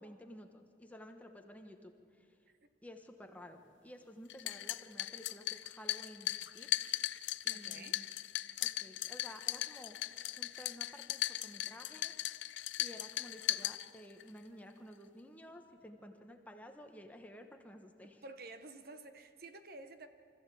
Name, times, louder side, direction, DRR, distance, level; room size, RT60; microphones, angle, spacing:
voice 1, 0.0-2.3 2.8-6.7 7.4-8.1 8.6-10.0 10.4-12.1 12.4-18.2, equal, 10° left, 4 dB, 1.2 m, -53 dB
sound 1, 4.3-14.3, left 15 dB, 85° left, 0.5 m, -38 dB
voice 2, 7.5-8.0 18.2-20.1, right 2 dB, 55° right, 9 dB, 1.0 m, -51 dB
25.0 x 14.5 x 8.5 m, 2.4 s
head